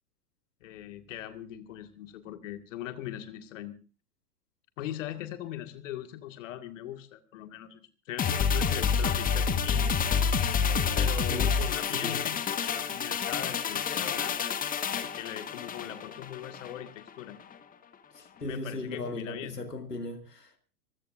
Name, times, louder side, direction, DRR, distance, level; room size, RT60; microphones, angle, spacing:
voice 1, 0.6-3.7 4.8-9.9 10.9-14.7 15.1-17.4 18.4-19.6, left 12 dB, 55° left, 7 dB, 2.1 m, -40 dB
sound 1, 8.2-16.8 17.1-17.2, left 6 dB, 20° left, 1.5 m, -28 dB
voice 2, 18.1-20.6, left 2 dB, 85° left, 5 dB, 2.5 m, -37 dB
26.0 x 15.5 x 2.6 m, 0.36 s
figure-of-eight pair, 100°, 46 cm